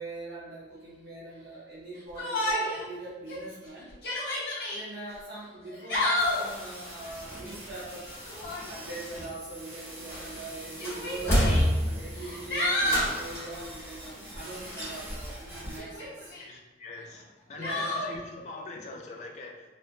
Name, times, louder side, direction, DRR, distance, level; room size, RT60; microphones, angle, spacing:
voice 1, 0.0-3.9 4.7-8.1 8.7-11.5 11.8-16.3 17.6-17.9, right 2 dB, 75° right, -9 dB, 0.6 m, -41 dB
Yell, 2.2-2.8 3.3-3.4 3.9-4.8 5.7-6.5 8.2-8.7 9.8-9.9 10.8-11.6 12.2-13.1 15.8-16.4 17.6-18.1, left 1 dB, 65° left, 0.7 m, -29 dB
sound 1, 6.2-15.8, equal, 10° right, 0.7 m, -44 dB
sound 2, 10.1-10.5 10.8-12.2 12.8-13.6 14.7-15.3 15.6-15.7, equal, 15° left, 0.9 m, -27 dB
voice 2, 16.4-19.6, left 2 dB, 40° left, 2 dB, 0.3 m, -42 dB
3.0 x 2.0 x 2.4 m, 1.2 s
head